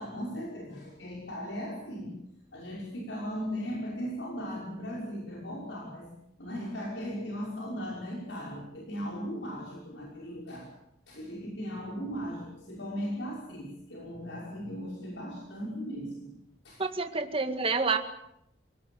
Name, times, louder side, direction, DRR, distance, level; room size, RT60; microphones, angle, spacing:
voice 1, 0.0-2.2 2.5-6.1 6.4-10.7 11.1-16.3 16.6-16.8, equal, 70° left, 5.8 m, -37 dB
voice 2, 16.8-18.0, right 4 dB, 30° right, 2.0 m, -28 dB
28.5 x 18.0 x 7.9 m
head